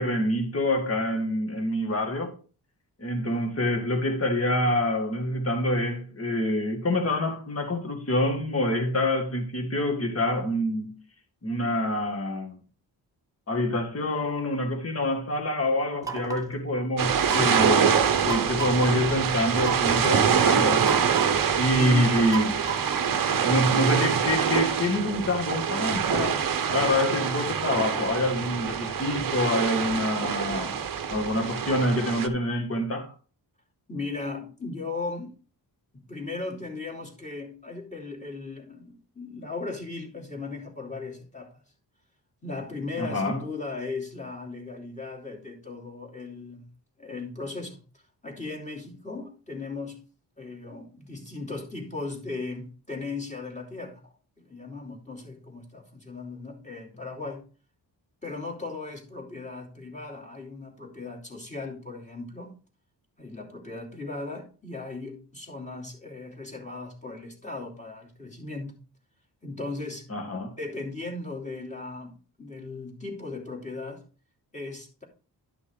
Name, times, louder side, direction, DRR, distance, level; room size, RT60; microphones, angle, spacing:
voice 1, 0.0-2.3 3.0-10.9 11.4-12.6 13.5-20.8 21.5-22.6 23.4-26.4 26.7-30.8 31.1-33.1 43.0-43.4 70.1-70.5, left 1 dB, 35° left, 1.9 m, -26 dB
sound 1, 16.0-16.5 17.3-17.8 18.3-18.9 19.6-20.1 20.8-21.5 22.3-23.1, right 7 dB, 10° right, 1.2 m, -34 dB
sound 2, 17.0-32.3, right 7 dB, 50° right, 0.9 m, -25 dB
voice 2, 21.7-22.1 33.9-35.3 35.9-41.6 42.4-46.7 47.0-50.0 50.4-57.4 58.2-62.5 63.2-68.7 69.4-70.1 70.6-74.0 74.5-75.0, left 3 dB, 15° left, 2.9 m, -37 dB
11.5 x 6.0 x 3.7 m
wide cardioid pair, 125°, 41 cm